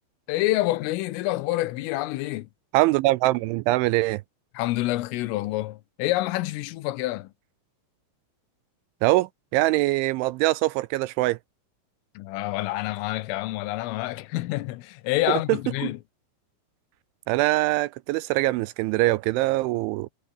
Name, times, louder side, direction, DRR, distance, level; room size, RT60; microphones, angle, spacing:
voice 1, 0.3-2.5 4.6-7.3 12.2-16.0, left 17 dB, 80° left, 3.6 m, -27 dB
voice 2, 2.7-4.2 9.0-11.4 15.3-15.4 15.8-15.9 17.3-20.1, right 19 dB, 80° right, 2.8 m, -23 dB
omnidirectional pair, 5.8 m